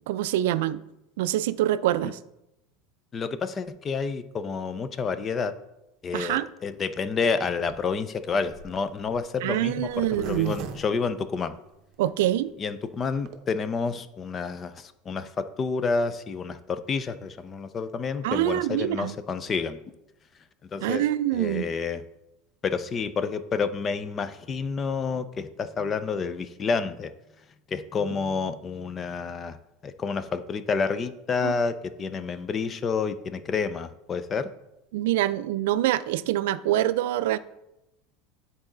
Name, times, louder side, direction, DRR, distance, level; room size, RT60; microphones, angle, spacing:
voice 1, 0.1-0.8 1.2-2.2 6.1-6.5 9.4-10.5 12.0-12.5 18.2-19.2 20.8-21.7 31.4-31.5 34.9-37.4, right 13 dB, 80° right, 0.3 m, -25 dB
voice 2, 3.1-5.5 6.0-11.5 12.6-19.8 20.7-21.0 21.3-22.0 22.6-27.1 27.7-29.6 29.8-34.5, left 5 dB, 20° left, 0.4 m, -29 dB
Zipper (clothing), 7.6-12.0 12.4-12.5 12.7-12.8 13.0-13.4, right 6 dB, 50° right, 0.7 m, -42 dB
9.6 x 4.1 x 3.8 m
supercardioid pair, 160°, 0 cm